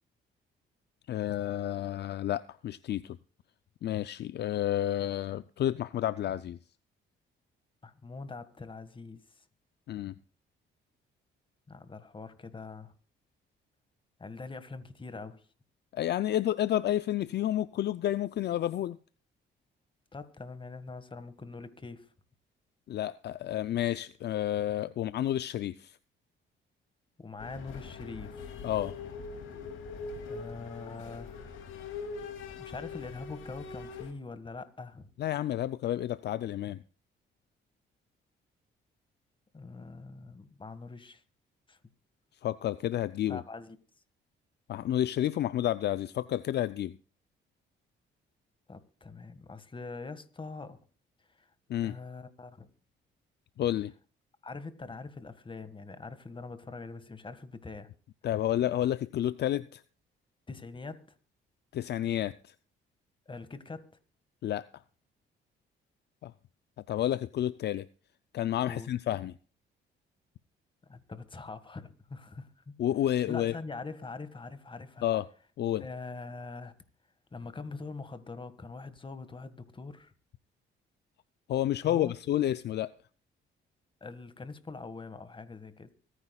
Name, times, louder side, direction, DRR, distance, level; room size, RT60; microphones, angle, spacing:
voice 1, 1.1-3.2 3.8-6.6 9.9-10.1 15.9-19.0 22.9-26.0 28.6-28.9 35.2-36.8 42.4-43.4 44.7-46.9 51.7-51.9 53.6-53.9 58.2-59.8 61.7-62.5 64.4-64.7 66.2-66.3 66.9-67.9 68.3-69.3 72.8-73.6 75.0-75.2 75.6-75.8 81.5-82.9, left 12 dB, 60° left, 0.5 m, -30 dB
voice 2, 7.8-9.4 11.7-12.9 14.2-15.5 20.1-22.1 27.2-28.6 30.3-31.5 32.6-35.1 39.5-41.2 41.7-41.8 43.3-43.8 48.7-50.8 51.3-51.5 51.8-52.7 54.4-57.9 60.5-61.0 63.2-63.9 68.6-68.9 70.8-72.7 73.1-75.1 75.8-76.7 77.3-80.1 81.8-82.1 84.0-85.9, left 3 dB, 25° left, 1.7 m, -43 dB
sound 1, 27.4-34.1, left 4 dB, 85° left, 2.5 m, -42 dB
24.5 x 9.9 x 2.3 m
cardioid pair, 90°, 20 cm